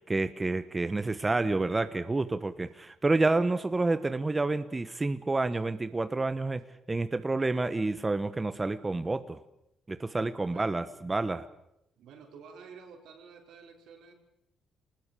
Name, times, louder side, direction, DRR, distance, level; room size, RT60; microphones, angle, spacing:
voice 1, 0.0-9.4 9.9-11.5, right 2 dB, 20° right, 11 dB, 1.2 m, -29 dB
voice 2, 10.4-11.0 12.0-14.1, right 5 dB, 80° right, 3 dB, 5.3 m, -50 dB
25.0 x 20.0 x 8.5 m, 0.80 s
cardioid pair, 90°, 0 cm